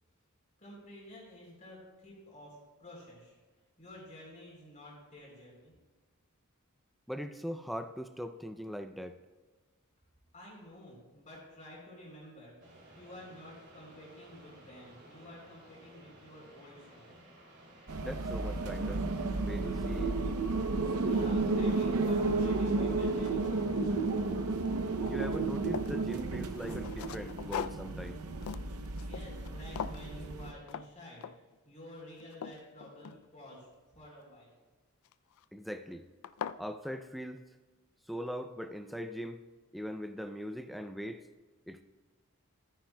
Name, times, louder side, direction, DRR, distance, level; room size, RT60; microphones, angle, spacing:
voice 1, 0.6-3.4 3.8-5.7 10.3-12.5 12.9-17.1 21.0-24.1 24.7-24.8 29.0-31.3 31.6-34.6, left 1 dB, 35° left, -4 dB, 3.4 m, -51 dB
voice 2, 7.1-9.2 18.0-19.1 19.4-20.1 25.0-28.2 35.5-36.0 36.6-37.4 38.1-39.4 39.7-41.2 41.7-41.8, equal, ahead, 8 dB, 0.3 m, -40 dB
sound 1, 12.6-22.8, right 1 dB, 50° right, 2.8 m, -57 dB
sound 2, 17.9-30.5, right 3 dB, 90° right, 0.6 m, -32 dB
sound 3, 22.3-22.4 22.9-24.3 24.6-26.0 26.5-29.5 29.8-30.1 30.7-30.9 31.2-31.6 32.0-33.6 35.0-35.4 35.9-36.0 36.2-36.6, left 8 dB, 75° left, 0.3 m, -42 dB
14.5 x 9.2 x 2.2 m, 1.3 s
head